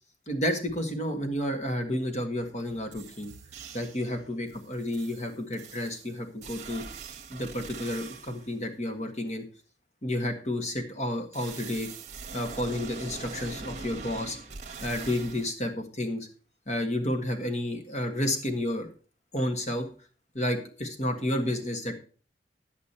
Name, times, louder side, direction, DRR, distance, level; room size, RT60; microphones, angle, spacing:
voice 1, 0.3-3.3 3.7-6.8 7.3-9.4 10.0-11.9 12.3-14.4 14.8-16.3 16.7-18.9 19.3-19.9 20.3-22.0, left 1 dB, 40° left, 5 dB, 1.5 m, -31 dB
sound 1, 2.6-2.7 2.9-4.1 4.5-8.5 11.3-15.5, right 4 dB, 40° right, 1.3 m, -43 dB
10.5 x 8.4 x 4.3 m, 0.39 s
head